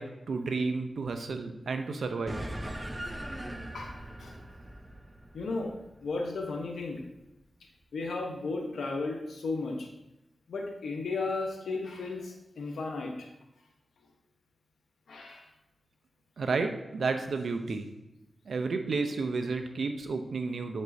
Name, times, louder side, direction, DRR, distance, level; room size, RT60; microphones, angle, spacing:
voice 1, 0.0-2.4 16.4-17.9 18.5-20.8, right 4 dB, 75° right, 7 dB, 0.6 m, -31 dB
sound 1, 2.3-7.0, right 1 dB, 20° right, 0.7 m, -40 dB
voice 2, 3.7-4.4 5.3-5.7 6.0-7.0 7.9-9.9 10.5-13.3 15.1-15.5, left 3 dB, 85° left, 1 dB, 1.0 m, -34 dB
7.4 x 5.3 x 2.7 m, 0.94 s
cardioid pair, 40°, 0 cm